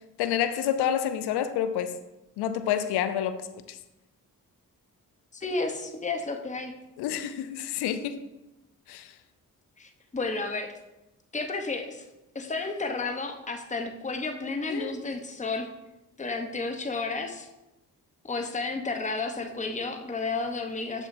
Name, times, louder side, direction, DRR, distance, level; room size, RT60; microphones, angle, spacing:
voice 1, 0.2-1.9 2.4-3.4 3.7-3.8 7.0-8.2 8.9-9.1 14.7-15.0, left 10 dB, 80° left, 11 dB, 0.5 m, -28 dB
voice 2, 5.3-6.7 9.8-10.7 11.3-12.0 12.3-15.7 16.2-17.5 18.2-21.1, left 3 dB, 20° left, 4 dB, 0.9 m, -32 dB
7.1 x 6.7 x 2.6 m, 0.96 s
supercardioid pair, 40°, 39 cm